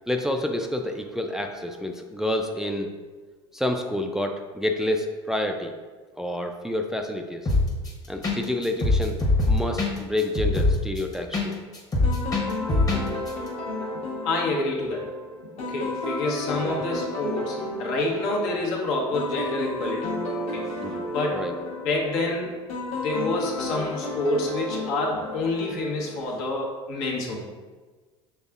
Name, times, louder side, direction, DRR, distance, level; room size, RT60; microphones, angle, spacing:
voice 1, 0.1-2.9 3.5-5.7 6.2-7.5 8.1-9.2 9.5-11.6 20.8-21.5, left 1 dB, 5° right, 3 dB, 0.3 m, -28 dB
sound 1, 7.5-7.9 8.2-8.4 8.6-11.5 11.7-13.0 13.3-13.4, left 2 dB, 25° left, 1.0 m, -22 dB
sound 2, 12.0-26.2, left 2 dB, 50° left, 1.1 m, -33 dB
voice 2, 13.9-15.1 15.6-20.6 21.1-21.4 21.8-22.5 23.0-27.4, left 2 dB, 70° left, -2 dB, 1.0 m, -28 dB
5.3 x 3.4 x 2.4 m, 1.4 s
hypercardioid pair, 75°, 14 cm